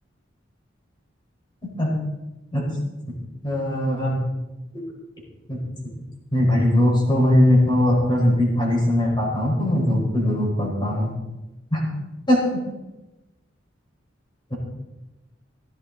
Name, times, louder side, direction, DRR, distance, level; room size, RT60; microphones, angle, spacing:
voice 1, 3.4-4.2 5.5-5.6 6.3-11.1 11.7-11.8 12.3-12.6, left 1 dB, 25° left, -2 dB, 5.0 m, -20 dB
16.0 x 13.0 x 4.1 m, 1.1 s
head